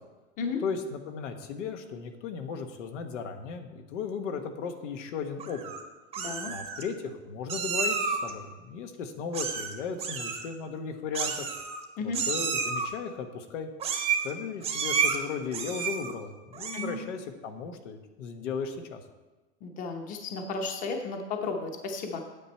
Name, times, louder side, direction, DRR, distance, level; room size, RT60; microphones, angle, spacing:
voice 1, 0.6-5.6 6.5-11.4 12.0-13.7 14.2-19.0, left 5 dB, 85° left, 6 dB, 1.3 m, -36 dB
Meow, 5.4-5.8 6.1-6.8 7.5-8.3 9.3-9.7 10.0-10.4 11.1-11.8 12.1-12.9 13.8-14.3 14.6-15.2 15.5-16.1 16.5-17.0, right 6 dB, 15° right, 0.8 m, -30 dB
voice 2, 6.2-6.5 12.0-12.2 16.7-17.0 19.6-22.2, left 4 dB, 20° left, 4 dB, 0.9 m, -33 dB
9.2 x 8.5 x 4.4 m, 1.2 s
supercardioid pair, 165°, 36 cm